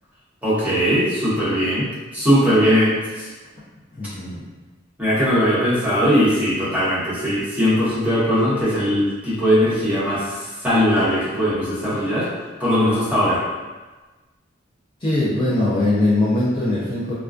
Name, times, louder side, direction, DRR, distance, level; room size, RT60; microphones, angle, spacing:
voice 1, 0.4-1.9 2.1-3.3 5.0-12.3 12.6-13.4, equal, 10° right, -11 dB, 0.8 m, -19 dB
voice 2, 3.9-4.4 15.0-17.1, left 2 dB, 25° left, -9 dB, 0.4 m, -21 dB
2.3 x 2.2 x 2.4 m, 1.3 s
head